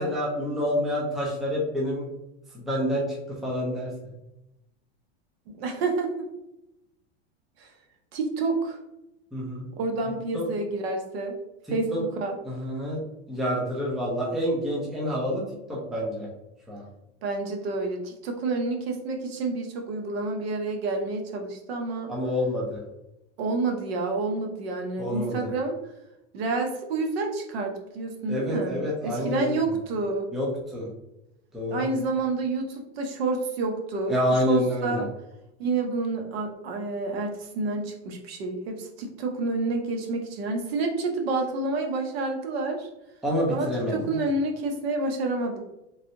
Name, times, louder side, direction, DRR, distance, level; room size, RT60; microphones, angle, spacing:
voice 1, 0.0-2.1 2.5-3.9 9.3-9.6 10.3-10.4 11.9-12.0 12.4-13.0 13.3-15.4 15.7-16.3 16.7-16.9 22.1-22.8 25.0-25.4 28.3-29.6 30.3-30.9 31.5-31.9 34.1-35.0 43.2-44.2, equal, ahead, -5 dB, 0.4 m, -28 dB
voice 2, 5.5-6.1 7.6-7.7 8.1-8.8 9.8-11.4 11.7-12.4 17.2-22.1 23.4-25.8 26.3-30.3 31.7-35.1 35.6-42.9 43.5-45.6, right 3 dB, 65° right, 3 dB, 0.8 m, -29 dB
3.2 x 2.7 x 2.6 m, 0.90 s
supercardioid pair, 150°, 33 cm